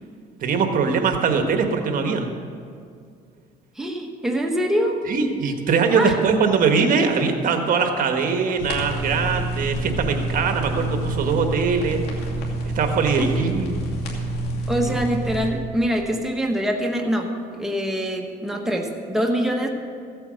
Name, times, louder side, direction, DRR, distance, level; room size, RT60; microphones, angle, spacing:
voice 1, 0.4-2.3 5.1-12.0 12.7-13.8 14.9-15.0, right 5 dB, 55° right, 5 dB, 1.4 m, -21 dB
voice 2, 3.8-5.0 6.0-6.2 13.2-13.7 14.7-19.7, equal, ahead, 1 dB, 1.3 m, -24 dB
sound 1, 8.6-15.5, right 1 dB, 75° left, 2.6 m, -27 dB
15.5 x 8.7 x 6.4 m, 2.3 s
cardioid pair, 110°, 17 cm